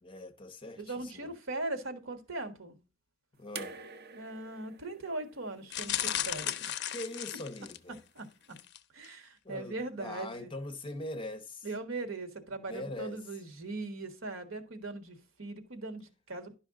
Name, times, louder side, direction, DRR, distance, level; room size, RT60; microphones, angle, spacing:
voice 1, 0.0-1.3 3.3-3.8 6.9-8.0 9.1-11.7 12.7-13.2, left 1 dB, 25° left, 0.8 m, -42 dB
voice 2, 0.8-2.7 4.1-6.8 8.1-8.3 8.9-10.5 11.6-16.6, right 2 dB, 75° right, 1.5 m, -40 dB
sound 1, 3.5-6.7 7.9-8.0, right 4 dB, 50° right, 0.9 m, -48 dB
sound 2, 5.7-8.0 8.5-8.8 9.0-9.1, left 11 dB, 55° left, 0.5 m, -35 dB
11.0 x 5.6 x 3.7 m
head